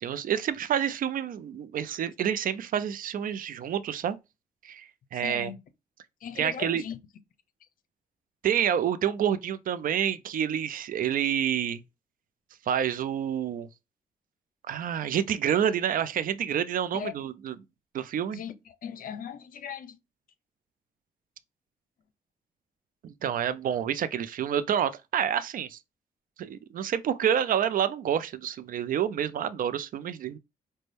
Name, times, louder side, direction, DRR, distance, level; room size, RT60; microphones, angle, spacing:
voice 1, 0.0-4.2 4.6-5.5 6.4-6.8 8.4-11.8 12.7-13.7 14.7-17.6 17.9-18.4 23.0-25.8 26.4-30.4, right 9 dB, 70° right, 0.5 m, -28 dB
voice 2, 5.1-5.6 6.2-7.0 16.9-17.1 18.3-18.5 18.8-20.0, left 8 dB, 70° left, 0.6 m, -38 dB
5.1 x 2.2 x 3.3 m
cardioid pair, 75°, 15 cm